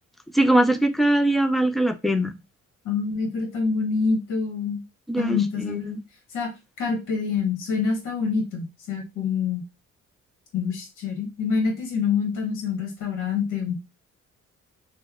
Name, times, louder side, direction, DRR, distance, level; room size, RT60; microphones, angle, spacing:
voice 1, 0.3-2.3 5.1-6.0, right 1 dB, ahead, 0.3 m, -21 dB
voice 2, 2.8-4.8 5.2-6.0 6.3-6.5 6.8-9.6 10.5-13.8, left 5 dB, 80° left, 1.2 m, -26 dB
2.9 x 2.1 x 3.5 m
cardioid pair, 90°, 30 cm